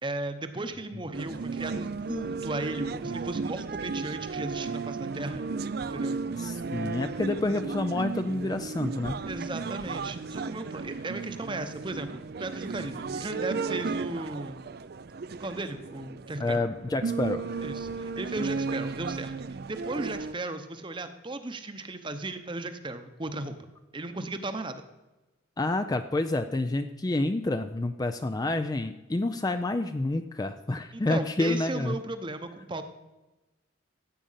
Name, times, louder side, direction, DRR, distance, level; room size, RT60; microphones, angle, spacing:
voice 1, 0.0-5.4 5.9-6.2 9.3-12.1 12.4-14.6 15.4-16.6 17.6-19.3 19.7-23.5 23.9-24.8 30.9-32.8, right 2 dB, 25° right, 9 dB, 0.8 m, -36 dB
sound 1, 1.1-20.3, right 4 dB, 50° right, 0.4 m, -34 dB
voice 2, 6.4-9.2 16.4-17.4 25.6-32.0, left 2 dB, 20° left, 9 dB, 0.4 m, -28 dB
14.5 x 8.6 x 5.6 m, 1.1 s
head